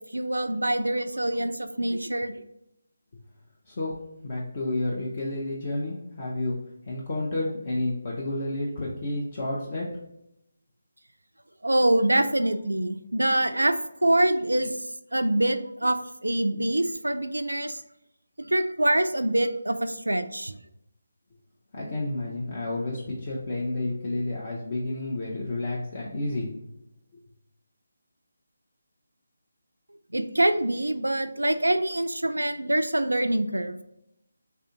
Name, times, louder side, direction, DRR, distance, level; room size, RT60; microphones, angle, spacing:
voice 1, 0.1-2.4 11.6-13.7 14.0-17.8 18.4-20.6 30.1-33.8, right 1 dB, 85° right, 8 dB, 0.3 m, -25 dB
voice 2, 3.7-4.0 4.2-6.6 6.9-9.9 21.7-26.5, left 2 dB, 35° left, -5 dB, 0.7 m, -30 dB
3.3 x 2.7 x 3.7 m, 0.81 s
figure-of-eight pair, 155°, 0 cm